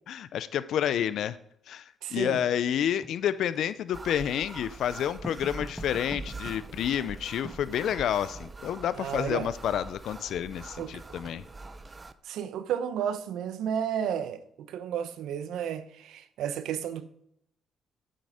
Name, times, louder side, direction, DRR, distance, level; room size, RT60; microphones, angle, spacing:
voice 1, 0.1-1.4 1.7-11.4, left 10 dB, 75° left, 0.5 m, -29 dB
voice 2, 2.0-2.4 9.0-9.5 10.8-11.0 12.2-17.1, right 9 dB, 85° right, 0.8 m, -32 dB
Writing, 3.0-9.0, equal, ahead, 1.5 m, -46 dB
sound 1, 3.9-12.1, right 3 dB, 25° right, 0.7 m, -43 dB
9.3 x 7.8 x 5.0 m
cardioid pair, 90°, 0 cm